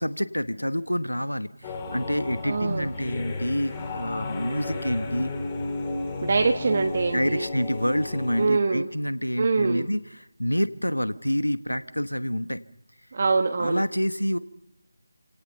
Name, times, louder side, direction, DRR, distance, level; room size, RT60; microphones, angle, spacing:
voice 1, 0.0-5.3 7.1-12.6 13.6-14.4, equal, 85° left, 13 dB, 1.2 m, -27 dB
sound 1, 1.6-8.5, left 2 dB, 15° left, 3.1 m, -33 dB
voice 2, 2.4-2.9 6.2-7.4 8.4-8.9 9.4-9.9 13.1-13.8, right 4 dB, 35° right, 6 dB, 1.1 m, -24 dB
28.5 x 17.5 x 5.7 m, 0.87 s
figure-of-eight pair, 160°, 0 cm